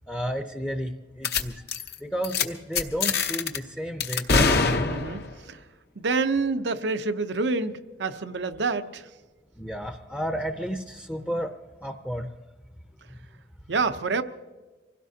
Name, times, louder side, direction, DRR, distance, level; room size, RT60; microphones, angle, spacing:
voice 1, 0.1-1.5 2.0-4.6 9.6-11.5 11.8-12.3, equal, 5° left, 5 dB, 0.6 m, -32 dB
sound 1, 1.2-1.4 1.7-1.9 2.2-2.4 2.8-3.6 4.0-5.3, left 4 dB, 60° left, 0.9 m, -23 dB
voice 2, 4.9-5.6 6.0-9.1 13.7-14.2, right 4 dB, 85° right, 9 dB, 0.8 m, -27 dB
25.0 x 16.5 x 2.8 m, 1.3 s
head